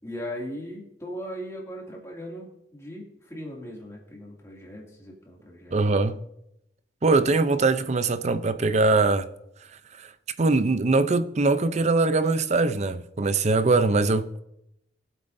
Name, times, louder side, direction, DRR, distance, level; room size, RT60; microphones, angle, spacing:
voice 1, 0.0-5.8, equal, 15° left, 2.4 m, -38 dB
voice 2, 5.7-6.2 7.0-9.3 10.0-10.1 10.4-14.4, right 3 dB, 40° right, 0.6 m, -22 dB
18.5 x 8.0 x 2.6 m
head